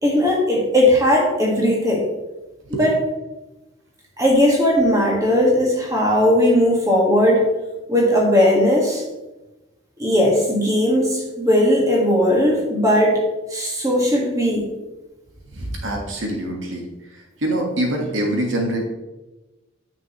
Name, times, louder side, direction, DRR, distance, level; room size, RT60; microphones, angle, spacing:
voice 1, 0.0-2.0 2.8-2.9 4.2-7.5 7.9-9.0 10.0-13.2 13.5-14.6, left 1 dB, 15° right, -2 dB, 1.7 m, -17 dB
voice 2, 15.5-16.8 17.4-18.8, right 1 dB, 75° right, 1 dB, 1.6 m, -24 dB
9.2 x 6.2 x 3.1 m, 1.1 s
head